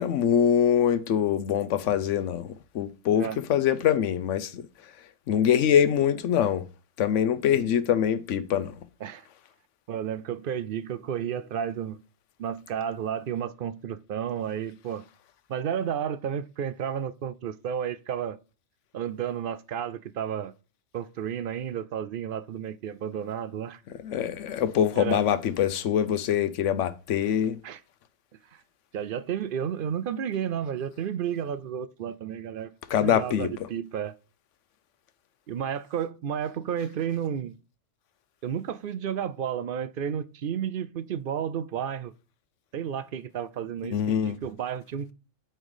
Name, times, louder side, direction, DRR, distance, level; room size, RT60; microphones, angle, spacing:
voice 1, 0.0-4.7 5.3-6.7 7.0-8.8 24.0-27.6 32.9-33.5 43.9-44.4, left 9 dB, 85° left, 1.0 m, -24 dB
voice 2, 9.9-12.0 12.4-15.0 15.5-18.4 18.9-20.5 20.9-23.8 25.0-25.2 27.6-27.8 28.9-32.7 33.0-34.1 35.5-37.6 38.4-42.1 42.7-45.1, right 8 dB, 60° right, 0.6 m, -32 dB
8.8 x 4.5 x 4.8 m
omnidirectional pair, 1.2 m